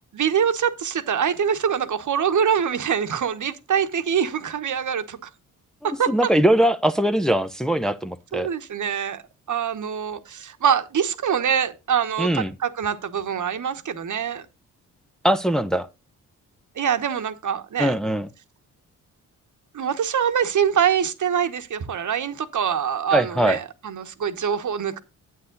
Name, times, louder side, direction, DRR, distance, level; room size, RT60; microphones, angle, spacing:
voice 1, 0.1-5.3 5.8-6.1 8.3-9.2 9.5-14.4 16.7-17.9 19.7-25.0, right 8 dB, 60° right, 1.2 m, -24 dB
voice 2, 6.1-8.5 12.2-12.5 15.2-15.9 17.8-18.3 23.1-23.6, right 1 dB, ahead, 0.8 m, -21 dB
9.5 x 8.4 x 3.9 m
cardioid pair, 65°, 34 cm